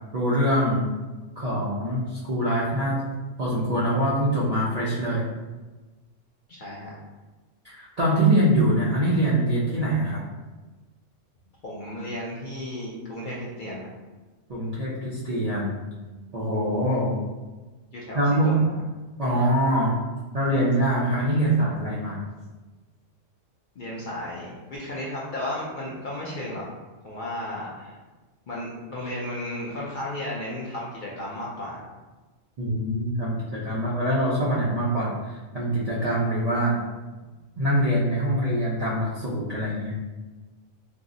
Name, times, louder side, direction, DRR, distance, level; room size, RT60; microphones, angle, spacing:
voice 1, 0.1-0.9 1.4-3.0 3.4-5.2 7.6-10.2 14.5-15.7 16.3-17.2 18.1-18.6 19.2-20.0 20.3-22.2 32.6-36.8 37.6-40.0, right 1 dB, 60° right, -7 dB, 0.4 m, -24 dB
voice 2, 6.5-7.0 11.6-13.9 17.9-18.7 23.8-26.7 27.0-28.0 28.5-31.8, left 1 dB, 60° left, -5 dB, 0.5 m, -34 dB
2.6 x 2.0 x 3.6 m, 1.2 s
omnidirectional pair, 1.3 m